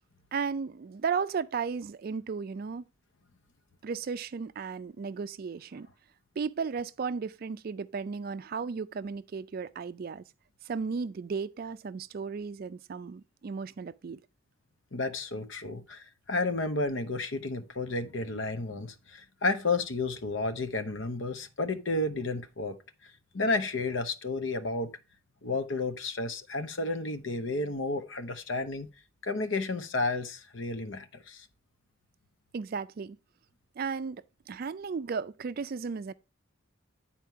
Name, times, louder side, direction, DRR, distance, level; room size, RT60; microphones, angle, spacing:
voice 1, 0.3-2.9 3.8-5.9 6.4-10.2 10.6-14.2 32.5-33.2 33.8-36.1, right 5 dB, 45° right, 0.3 m, -35 dB
voice 2, 14.9-22.8 23.0-24.9 25.4-28.9 29.2-31.5, left 3 dB, 65° left, 0.9 m, -32 dB
9.2 x 4.3 x 4.5 m
head